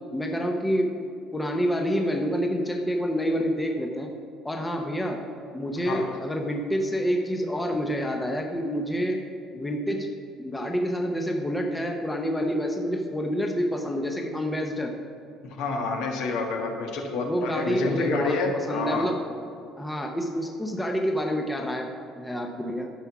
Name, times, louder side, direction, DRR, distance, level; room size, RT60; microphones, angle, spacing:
voice 1, 0.1-4.1 4.4-5.2 5.5-10.1 10.4-15.0 17.2-19.2 19.8-22.9, equal, 5° left, 2 dB, 0.7 m, -28 dB
voice 2, 15.4-19.1, left 3 dB, 70° left, 2 dB, 1.6 m, -28 dB
11.5 x 5.8 x 5.9 m, 2.5 s
cardioid pair, 160°, 0 cm